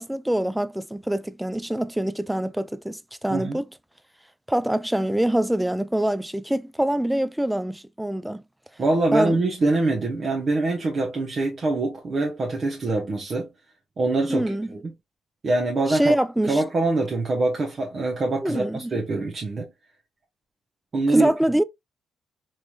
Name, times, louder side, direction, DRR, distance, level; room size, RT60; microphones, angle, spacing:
voice 1, 0.0-3.7 4.5-8.4 9.1-9.4 14.3-14.7 15.9-16.6 18.4-19.0 21.1-21.6, right 1 dB, 5° right, 0.3 m, -25 dB
voice 2, 8.8-13.5 14.0-14.5 14.8-14.9 15.4-16.2 16.5-19.7 20.9-21.3, right 2 dB, 40° right, 0.9 m, -24 dB
3.1 x 3.0 x 2.4 m
cardioid pair, 90°, 0 cm